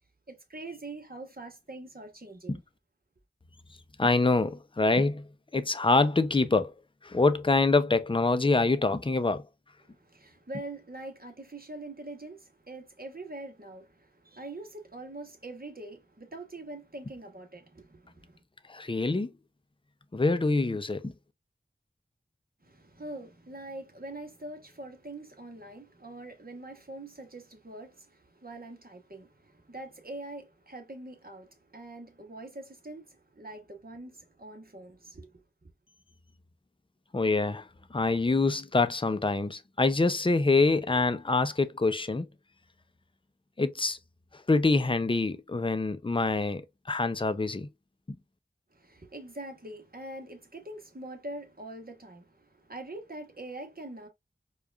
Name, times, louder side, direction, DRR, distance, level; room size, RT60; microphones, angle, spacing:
voice 1, 0.3-2.6 10.1-13.9 14.2-18.4 22.6-28.1 28.4-31.5 31.7-33.0 33.3-35.3 48.7-52.3 52.7-54.1, right 2 dB, 50° right, 1.2 m, -43 dB
voice 2, 4.0-6.7 7.0-9.4 18.7-19.3 20.1-21.1 37.1-42.3 43.6-44.0 44.3-46.6 46.9-47.7, left 3 dB, 25° left, 0.5 m, -25 dB
4.7 x 2.4 x 2.4 m
wide cardioid pair, 45°, 19 cm